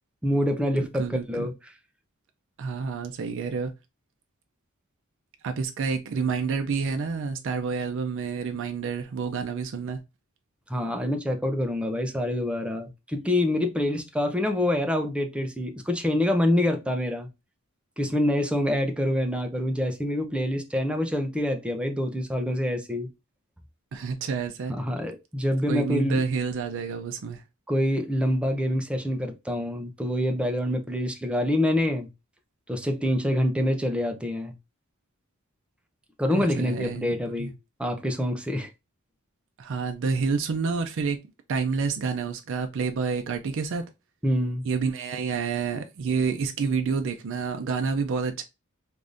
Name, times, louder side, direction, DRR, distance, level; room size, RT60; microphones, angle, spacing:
voice 1, 0.2-1.5 10.7-17.3 18.0-23.1 24.7-26.2 27.7-32.1 32.7-34.5 36.2-37.5 37.8-38.7 44.2-44.6, left 1 dB, 5° right, 0.5 m, -26 dB
voice 2, 0.8-1.5 2.6-3.7 5.4-10.0 23.9-24.7 25.7-27.4 36.3-37.5 39.6-41.2 41.5-43.9 44.7-48.4, right 5 dB, 60° right, 0.4 m, -29 dB
3.4 x 2.5 x 2.5 m
head